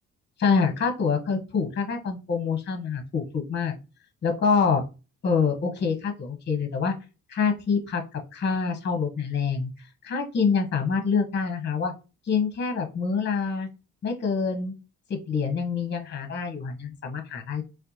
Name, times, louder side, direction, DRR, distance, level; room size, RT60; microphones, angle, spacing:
voice 1, 0.4-3.7 4.2-4.8 5.2-6.9 7.3-8.0 8.3-9.7 10.0-11.9 12.3-13.7 14.0-14.7 15.1-17.6, left 5 dB, 35° left, 5 dB, 1.0 m, -26 dB
4.2 x 2.3 x 2.7 m, 0.30 s
cardioid pair, 90°, 30 cm